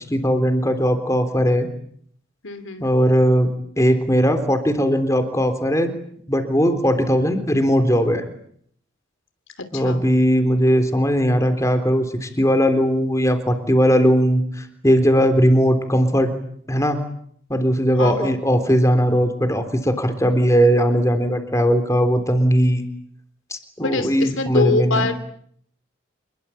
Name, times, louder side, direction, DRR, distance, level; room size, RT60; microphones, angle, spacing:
voice 1, 0.0-1.7 2.8-3.5 3.8-5.9 6.3-8.2 9.7-16.3 16.7-17.0 17.5-22.8 23.5-25.1, equal, 15° left, 7 dB, 3.6 m, -18 dB
voice 2, 2.4-2.9 9.7-10.0 18.0-18.3 23.8-25.1, left 4 dB, 80° left, 10 dB, 3.1 m, -24 dB
27.0 x 22.0 x 8.7 m, 0.66 s
head